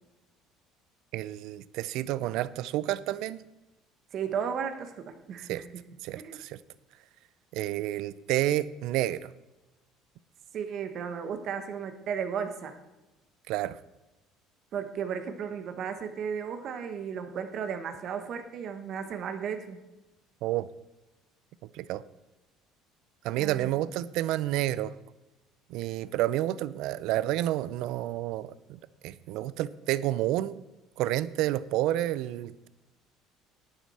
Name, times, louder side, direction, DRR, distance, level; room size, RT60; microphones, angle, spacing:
voice 1, 1.1-3.4 5.5-5.6 6.0-6.6 7.5-9.3 13.5-13.8 20.4-20.7 21.7-22.0 23.2-24.9 25.7-30.6 31.0-32.7, right 14 dB, 70° right, 18 dB, 0.5 m, -30 dB
voice 2, 4.1-5.6 6.1-6.4 10.5-12.8 14.7-19.8 23.3-23.7, right 7 dB, 55° right, 8 dB, 1.3 m, -34 dB
11.5 x 9.1 x 4.3 m, 1.0 s
supercardioid pair, 85°, 0 cm